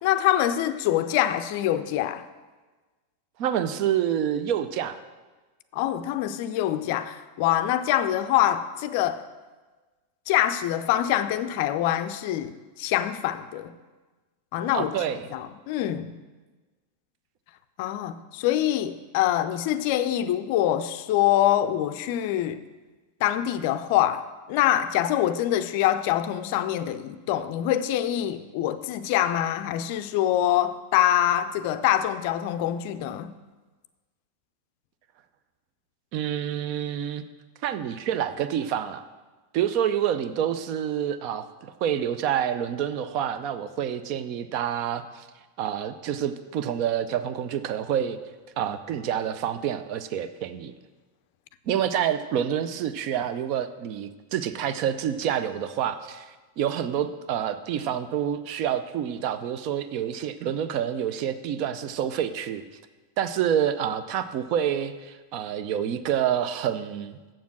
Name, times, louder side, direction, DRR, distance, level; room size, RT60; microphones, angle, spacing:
voice 1, 0.0-2.2 5.7-9.2 10.3-13.8 14.5-15.0 15.3-16.1 17.8-22.6 23.2-33.3, left 12 dB, 45° left, 0.4 m, -25 dB
voice 2, 3.4-5.0 14.7-15.2 36.1-37.2 37.6-39.0 39.5-45.3 45.6-48.2 48.6-50.7 51.7-56.2 56.6-62.6 63.2-67.2, right 9 dB, 45° right, 0.5 m, -28 dB
7.4 x 7.2 x 6.0 m
figure-of-eight pair, 90°, 0 cm